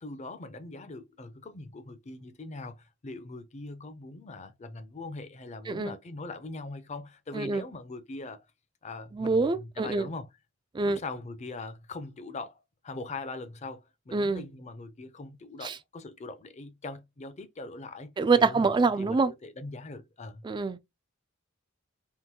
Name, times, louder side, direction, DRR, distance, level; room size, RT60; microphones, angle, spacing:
voice 1, 0.0-8.4 8.8-10.3 10.9-20.4, left 3 dB, 35° left, 0.5 m, -41 dB
voice 2, 9.1-10.1 10.7-11.0 14.1-14.4 15.6-15.7 18.2-19.3 20.4-20.8, right 4 dB, 20° right, 0.3 m, -25 dB
3.7 x 2.5 x 2.8 m
head